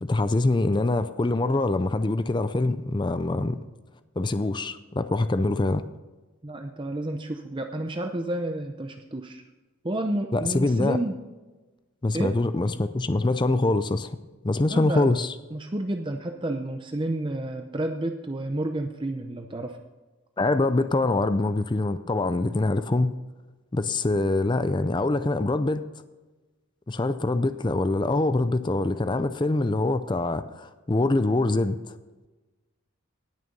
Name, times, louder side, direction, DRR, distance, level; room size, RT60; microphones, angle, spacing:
voice 1, 0.0-3.6 4.2-5.8 10.3-11.0 12.0-14.2 14.4-15.3 20.4-23.2 23.7-25.8 26.9-31.8, left 2 dB, 20° left, 11 dB, 0.4 m, -24 dB
voice 2, 6.4-9.4 9.8-11.2 12.1-12.3 14.7-15.1 15.5-19.8, right 1 dB, 20° right, 5 dB, 0.6 m, -30 dB
18.0 x 6.7 x 5.3 m, 1.2 s
head